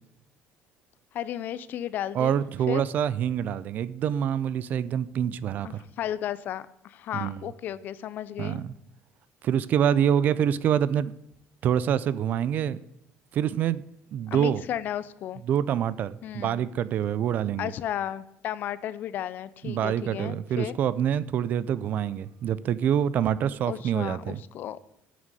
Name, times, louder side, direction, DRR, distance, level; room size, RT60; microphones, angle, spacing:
voice 1, 1.1-2.4 2.7-2.8 5.6-8.6 14.3-15.4 16.2-16.6 17.6-20.8 23.6-24.8, left 11 dB, 45° left, 0.5 m, -34 dB
voice 2, 2.1-5.8 7.1-7.4 8.4-8.7 9.4-11.1 11.6-12.8 13.3-13.8 14.1-14.6 15.5-17.7 19.6-24.4, right 9 dB, 40° right, 0.4 m, -26 dB
9.2 x 6.2 x 8.2 m
cardioid pair, 175°, 4 cm